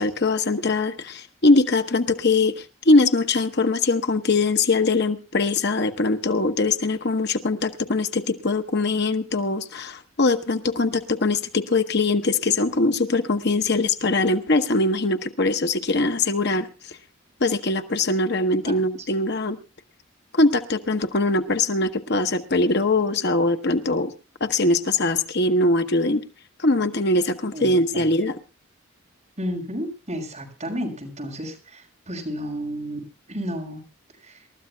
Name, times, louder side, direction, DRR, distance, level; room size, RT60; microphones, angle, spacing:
voice 1, 0.0-17.0 17.4-19.6 20.3-24.1 24.4-26.2 26.6-28.4, left 2 dB, 50° left, 8 dB, 1.0 m, -22 dB
voice 2, 27.5-28.1 29.4-33.0 33.3-33.8 34.2-34.4, equal, 35° right, 0 dB, 6.1 m, -32 dB
27.5 x 13.5 x 2.2 m, 0.31 s
head